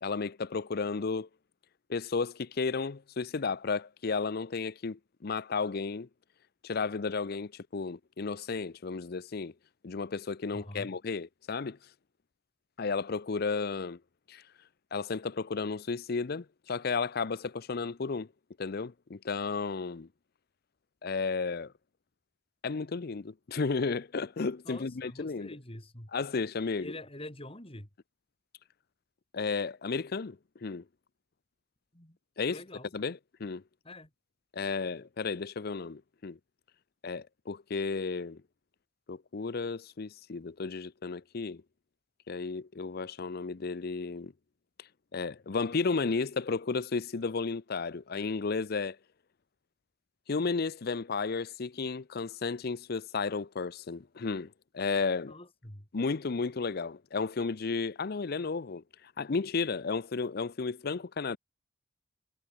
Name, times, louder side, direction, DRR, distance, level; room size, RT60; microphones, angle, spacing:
voice 1, 0.0-1.3 1.9-6.1 6.6-9.5 9.8-11.8 12.8-14.0 14.3-14.4 14.9-18.3 18.6-20.1 21.0-21.7 22.6-25.5 26.1-26.9 29.3-30.8 32.4-32.6 32.9-33.6 34.5-36.4 37.0-38.4 39.1-41.6 42.3-44.3 44.8-49.0 50.3-55.4 55.9-61.4, left 4 dB, 55° left, 0.6 m, -33 dB
voice 2, 10.5-10.9 24.6-26.1 26.8-27.9 31.9-32.2 32.4-32.9 33.8-34.1 55.2-55.9, left 1 dB, 30° left, 4.7 m, -45 dB
head